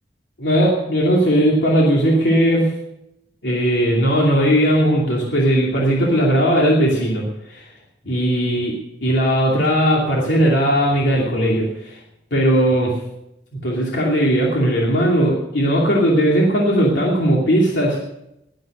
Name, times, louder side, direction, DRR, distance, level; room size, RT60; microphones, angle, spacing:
voice 1, 0.4-2.7 3.4-7.7 8.0-12.0 12.3-12.9 13.6-18.0, equal, 80° left, -3 dB, 2.8 m, -18 dB
20.5 x 8.0 x 6.6 m, 0.86 s
head